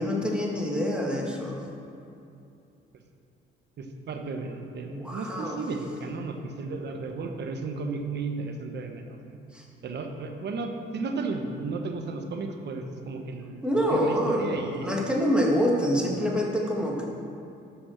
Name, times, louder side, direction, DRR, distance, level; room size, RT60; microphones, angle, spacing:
voice 1, 0.0-1.6 4.9-5.6 9.5-9.6 13.6-17.0, equal, 5° right, -2 dB, 1.9 m, -26 dB
voice 2, 3.8-9.4 9.8-14.9, right 3 dB, 60° right, 5 dB, 1.1 m, -34 dB
9.7 x 6.0 x 6.5 m, 2.6 s
cardioid pair, 90°, 20 cm